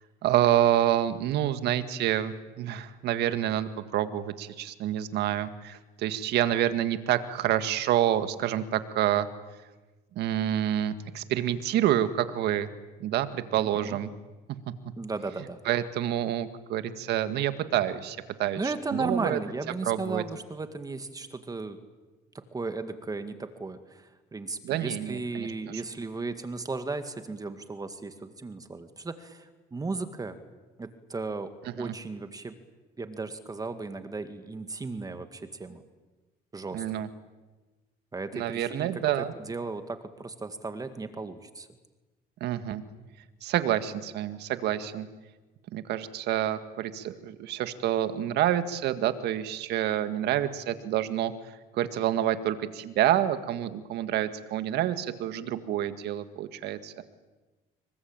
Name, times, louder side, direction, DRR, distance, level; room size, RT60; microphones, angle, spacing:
voice 1, 0.2-9.3 10.2-12.7 13.0-14.1 15.7-19.4 19.9-20.2 24.6-25.5 31.8-31.9 36.7-37.1 38.3-39.3 42.4-42.8 43.4-45.1 45.7-51.3 51.7-57.0, right 12 dB, 80° right, 11 dB, 1.9 m, -28 dB
voice 2, 13.5-14.0 15.0-15.6 18.6-21.8 22.5-30.4 30.8-31.5 31.8-32.5 33.0-35.8 36.5-36.8 38.1-41.7, right 3 dB, 20° right, 9 dB, 2.0 m, -35 dB
27.0 x 23.0 x 9.0 m, 1.2 s
cardioid pair, 110°, 17 cm